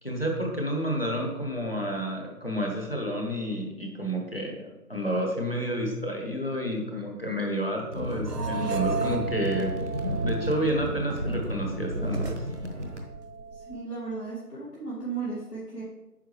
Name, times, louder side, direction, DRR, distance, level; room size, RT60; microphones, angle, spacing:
voice 1, 0.0-9.7 10.2-12.4, equal, 40° left, 0 dB, 1.3 m, -30 dB
sound 1, 7.9-13.0, right 1 dB, 50° right, 1.0 m, -32 dB
sound 2, 8.1-13.8, right 5 dB, 85° right, 0.7 m, -36 dB
voice 2, 13.5-15.8, right 4 dB, 75° left, -8 dB, 2.4 m, -35 dB
9.0 x 5.8 x 3.2 m, 1.0 s
figure-of-eight pair, 180°, 47 cm